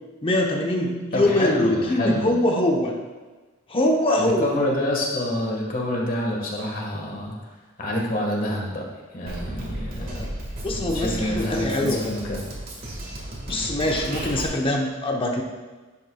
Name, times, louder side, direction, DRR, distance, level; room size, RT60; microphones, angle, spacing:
voice 1, 0.2-2.9 3.7-4.6 10.0-10.3 10.6-12.2 13.5-15.4, left 1 dB, 25° left, 1 dB, 0.9 m, -23 dB
voice 2, 1.1-2.3 4.2-7.3 7.8-8.9 9.1-10.3 10.8-12.5, left 1 dB, 45° left, -1 dB, 1.6 m, -27 dB
Drum kit, 9.3-14.4, right 1 dB, 45° right, 1.8 m, -34 dB
10.5 x 8.0 x 2.4 m, 1.3 s
head